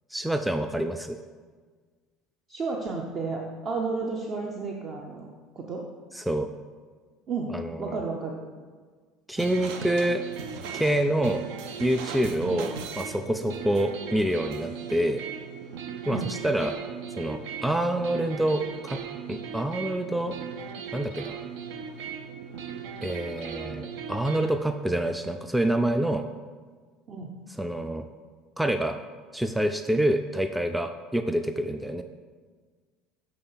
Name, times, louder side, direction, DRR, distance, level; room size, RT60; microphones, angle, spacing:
voice 1, 0.1-1.2 6.1-6.5 7.5-8.0 9.3-10.2 10.7-11.4 11.8-15.2 16.1-16.8 17.2-19.0 19.3-20.3 20.9-21.3 23.0-26.2 27.6-28.0 28.6-29.0 29.3-32.0, right 1 dB, 5° right, 7 dB, 0.3 m, -27 dB
voice 2, 2.5-5.3 5.6-5.8 7.3-7.5 7.8-8.4 12.4-12.6 16.1-16.3 27.1-27.3, right 4 dB, 45° right, 0 dB, 0.8 m, -32 dB
sound 1, 9.4-24.6, right 7 dB, 75° right, 0.5 m, -38 dB
7.7 x 3.3 x 5.6 m, 1.5 s
supercardioid pair, 85°, 0 cm